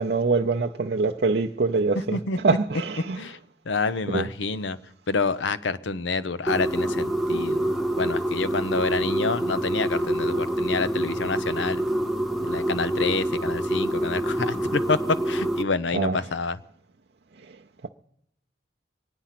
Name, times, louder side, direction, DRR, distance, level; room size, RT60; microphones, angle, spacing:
voice 1, 0.0-2.2 2.4-3.2 4.1-4.3 15.9-16.2 17.8-17.9, right 4 dB, 60° right, 0.6 m, -24 dB
voice 2, 3.7-4.8 5.1-7.6 8.0-11.8 12.5-15.0 15.3-16.6, left 4 dB, 90° left, 0.7 m, -28 dB
sound 1, 6.5-15.6, right 1 dB, ahead, 0.7 m, -26 dB
23.5 x 9.6 x 5.9 m
head